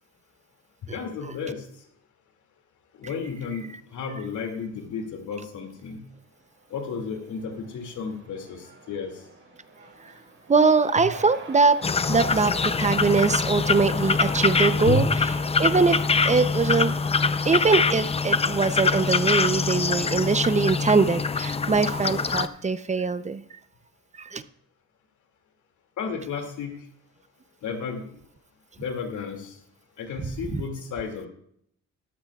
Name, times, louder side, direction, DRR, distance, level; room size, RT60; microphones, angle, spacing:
voice 1, 0.9-1.7 3.0-6.0 6.7-9.2 11.0-11.1 14.8-15.2 26.0-26.7 27.6-28.0 28.8-29.6 30.0-31.3, left 4 dB, 75° left, 3 dB, 2.4 m, -32 dB
Cheering / Crowd, 6.3-23.1, right 3 dB, 40° right, 4.3 m, -47 dB
voice 2, 10.5-11.8 12.1-15.0 15.6-17.0 17.4-23.4 24.2-24.4, right 4 dB, 25° right, 13 dB, 0.6 m, -22 dB
sound 1, 11.8-22.5, left 4 dB, 20° left, 0.5 m, -24 dB
13.5 x 12.5 x 2.4 m, 0.68 s
cardioid pair, 90°, 30 cm